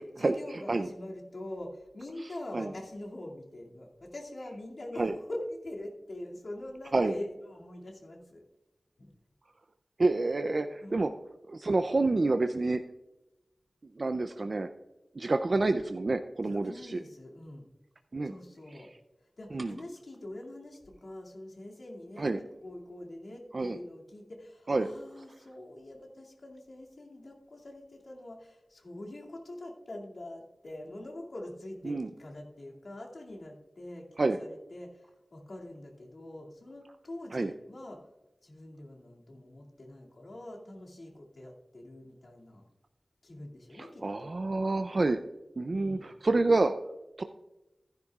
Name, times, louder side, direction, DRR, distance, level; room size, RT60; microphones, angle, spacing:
voice 1, 0.2-8.4 9.0-9.1 10.8-11.2 16.5-17.7 18.2-18.9 19.4-38.1 38.4-42.6 43.2-44.4 45.7-46.1, left 1 dB, 70° left, -2 dB, 2.3 m, -44 dB
voice 2, 10.0-11.1 11.5-12.8 14.0-14.7 15.2-17.0 18.1-18.3 19.5-19.7 22.2-22.4 23.5-23.8 24.7-24.9 31.9-32.1 34.2-34.4 37.3-37.5 43.8-45.2 45.6-46.7 47.2-47.3, right 2 dB, 55° right, 8 dB, 0.4 m, -28 dB
15.0 x 10.5 x 2.4 m, 1.0 s
wide cardioid pair, 80°, 0 cm